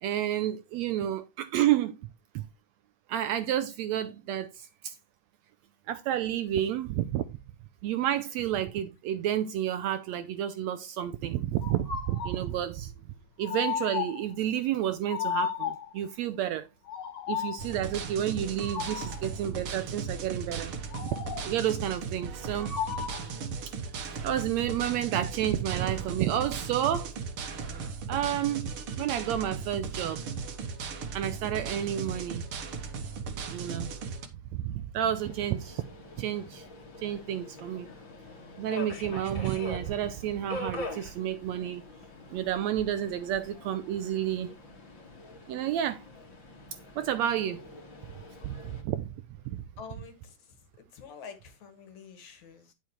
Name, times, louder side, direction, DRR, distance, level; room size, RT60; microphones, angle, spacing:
voice 1, 0.0-2.0 2.3-2.5 3.1-5.0 5.9-7.3 7.8-12.9 13.4-16.7 17.3-20.8 21.0-21.2 21.4-22.7 23.7-27.2 28.1-28.7 29.0-30.2 31.1-32.5 33.5-33.9 34.5-35.8 36.2-36.7 37.0-37.9 38.6-41.8 42.3-44.6 45.5-46.0 47.0-47.6 48.4-49.1 49.5-49.6, right 11 dB, 75° right, 1.7 m, -30 dB
sound 1, 11.6-12.4 13.4-14.3 15.1-16.0 16.9-17.7 18.6-19.3 20.9-21.6 22.6-23.4, left 8 dB, 85° left, 3.3 m, -34 dB
sound 2, 17.6-34.3, right 5 dB, 55° right, 1.8 m, -37 dB
Subway metro underground, 35.1-48.8, left 2 dB, 40° left, 2.9 m, -44 dB
voice 2, 49.8-50.4 50.9-52.7, left 6 dB, 70° left, 3.2 m, -47 dB
10.5 x 7.5 x 3.1 m
omnidirectional pair, 3.6 m